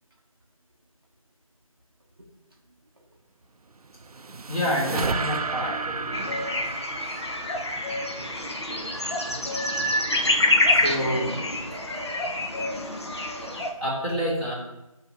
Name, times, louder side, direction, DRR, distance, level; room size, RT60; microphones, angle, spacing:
sound 1, 3.7-9.1, right 4 dB, 90° right, 0.4 m, -33 dB
voice 1, 4.5-6.3 10.1-10.2 10.6-11.4 13.8-14.5, equal, ahead, -22 dB, 1.5 m, -28 dB
sound 2, 6.1-13.7, left 1 dB, 45° left, 0.8 m, -26 dB
voice 2, 11.7-13.6, equal, 40° right, 0 dB, 0.7 m, -42 dB
7.6 x 2.8 x 4.8 m, 0.95 s
figure-of-eight pair, 175°, 19 cm